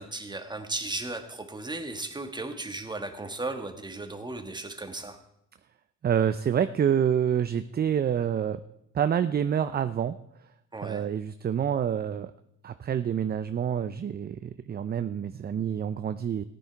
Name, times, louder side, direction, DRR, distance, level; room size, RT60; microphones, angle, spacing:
voice 1, 0.0-5.2 10.7-11.1, right 2 dB, 15° right, 7 dB, 1.4 m, -36 dB
voice 2, 6.0-8.6 8.9-10.2 10.8-12.3 12.6-16.4, right 8 dB, 35° right, 12 dB, 0.4 m, -27 dB
14.5 x 10.0 x 4.5 m, 0.77 s
cardioid pair, 90°, 30 cm